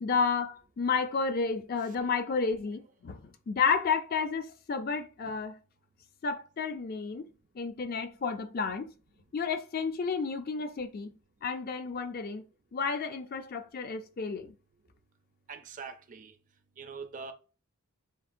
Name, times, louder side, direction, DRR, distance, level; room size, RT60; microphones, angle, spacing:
voice 1, 0.0-5.6 6.2-7.3 7.6-8.9 9.3-11.1 11.4-12.4 12.7-14.5, left 5 dB, 40° left, 0.4 m, -31 dB
voice 2, 15.5-16.4 16.8-17.3, right 5 dB, 35° right, 0.4 m, -43 dB
7.0 x 2.4 x 2.5 m
head